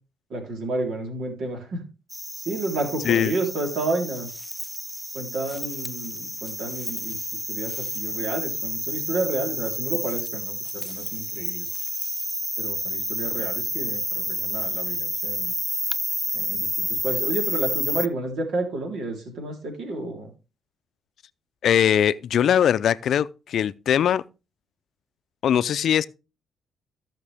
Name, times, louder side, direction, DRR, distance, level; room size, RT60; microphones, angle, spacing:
voice 1, 0.3-1.8 2.3-4.3 5.1-11.7 12.6-15.5 16.3-20.3, right 2 dB, 75° right, 3.8 m, -30 dB
sound 1, 2.1-18.1, equal, ahead, 0.6 m, -30 dB
voice 2, 21.6-24.2 25.4-26.1, left 9 dB, 65° left, 0.5 m, -21 dB
15.5 x 6.0 x 3.5 m
cardioid pair, 90°, 0 cm